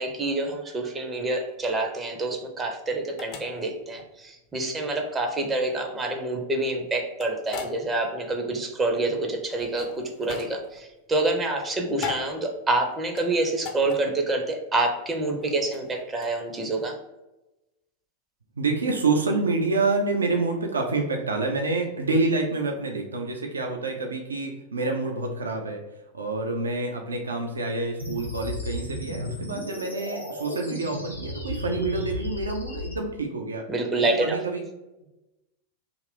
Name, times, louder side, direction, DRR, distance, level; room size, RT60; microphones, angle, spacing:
voice 1, 0.0-17.0 33.7-34.4, right 2 dB, 15° right, 3 dB, 0.5 m, -27 dB
sound 1, 1.5-16.9, left 6 dB, 40° left, 0.5 m, -41 dB
voice 2, 18.6-25.9 26.1-33.7 34.1-34.6, right 3 dB, 75° right, 2 dB, 0.4 m, -27 dB
sound 2, 28.0-33.0, left 1 dB, 90° left, 0.7 m, -34 dB
2.8 x 2.4 x 3.2 m, 1.0 s
figure-of-eight pair, 90°, 0 cm